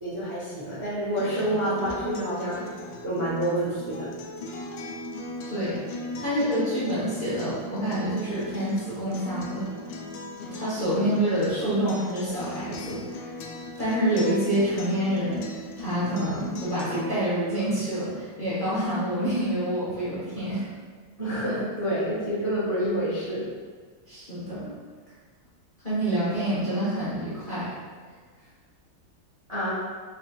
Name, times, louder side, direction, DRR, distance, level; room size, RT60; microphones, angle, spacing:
voice 1, 0.0-2.6 3.0-4.1 6.1-6.2 21.2-23.4 29.5-29.7, right 1 dB, 25° right, -11 dB, 0.6 m, -28 dB
Acoustic guitar, 1.2-17.2, left 1 dB, 75° left, 1.1 m, -38 dB
voice 2, 5.4-5.8 6.2-9.7 10.5-13.4 13.8-20.6 24.1-24.7 25.8-27.7, right 1 dB, 35° left, -12 dB, 0.9 m, -27 dB
4.9 x 3.1 x 2.3 m, 1.5 s
omnidirectional pair, 2.4 m